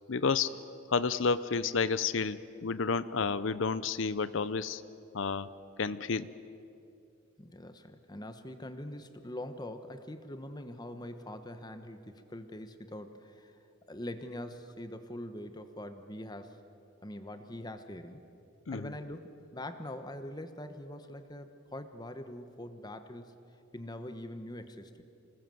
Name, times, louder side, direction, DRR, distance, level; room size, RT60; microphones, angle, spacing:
voice 1, 0.1-0.5 0.9-4.8 5.1-5.5 5.8-6.3 18.7-19.0, left 5 dB, 65° left, 15 dB, 0.6 m, -30 dB
voice 2, 7.4-13.5 13.9-16.6 17.0-18.2 18.7-23.3 23.7-25.0, left 1 dB, 20° left, 9 dB, 1.1 m, -43 dB
27.0 x 20.0 x 7.8 m, 2.6 s
head